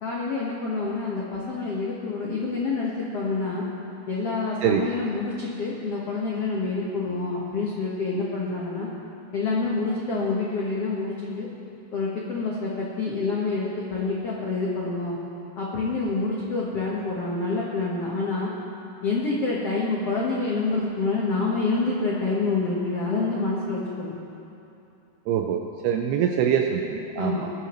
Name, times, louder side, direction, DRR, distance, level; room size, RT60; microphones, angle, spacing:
voice 1, 0.0-3.7 4.1-8.9 9.3-11.5 11.9-15.2 15.6-18.5 19.0-24.1 27.2-27.5, left 3 dB, 75° left, -5 dB, 1.4 m, -27 dB
voice 2, 25.3-27.5, right 8 dB, 80° right, 3 dB, 2.3 m, -24 dB
21.5 x 13.0 x 3.1 m, 2.8 s
omnidirectional pair, 5.1 m